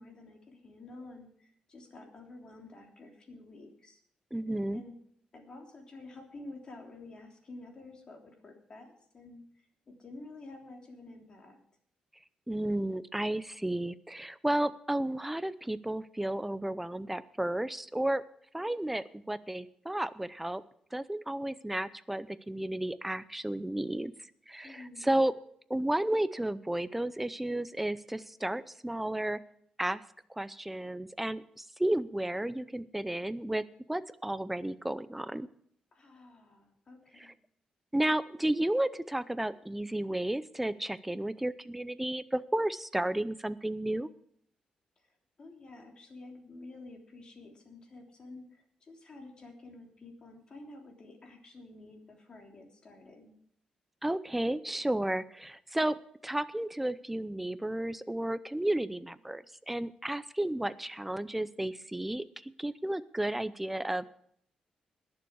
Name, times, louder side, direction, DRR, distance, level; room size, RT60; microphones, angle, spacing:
voice 1, 0.0-4.0 4.7-4.9 5.3-9.4 9.9-11.6 24.6-25.2 35.9-37.3 45.0-53.4, left 2 dB, 40° left, 1 dB, 3.3 m, -50 dB
voice 2, 4.3-4.8 12.5-18.2 18.5-20.6 20.9-24.1 24.5-25.3 25.7-29.4 29.8-30.0 30.3-33.6 33.9-35.5 37.2-37.3 37.9-44.1 54.0-56.0 56.2-64.1, right 1 dB, 5° right, 15 dB, 0.6 m, -32 dB
21.0 x 7.1 x 4.8 m, 0.65 s
cardioid pair, 115°, 2 cm